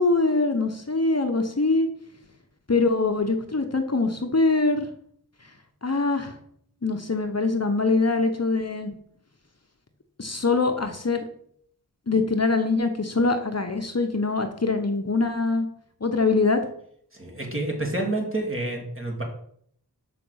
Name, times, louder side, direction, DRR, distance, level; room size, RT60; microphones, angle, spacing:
voice 1, 0.0-1.9 2.7-4.9 5.8-6.4 6.8-8.9 10.2-11.2 12.1-15.7 16.0-16.6, left 3 dB, 40° left, 5 dB, 0.9 m, -23 dB
voice 2, 17.1-19.2, right 2 dB, 30° right, 0 dB, 2.4 m, -28 dB
6.8 x 5.3 x 6.3 m, 0.65 s
wide cardioid pair, 65°, 39 cm